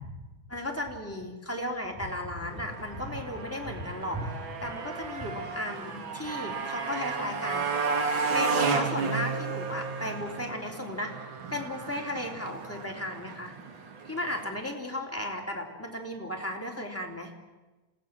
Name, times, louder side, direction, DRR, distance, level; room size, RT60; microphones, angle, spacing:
voice 1, 0.5-7.7 8.3-11.1 11.5-13.5 14.0-17.3, left 1 dB, 5° left, 0 dB, 3.1 m, -35 dB
Motorcycle, 2.4-14.5, right 4 dB, 70° right, 2.5 m, -33 dB
27.5 x 17.0 x 7.5 m, 1.2 s
omnidirectional pair, 2.3 m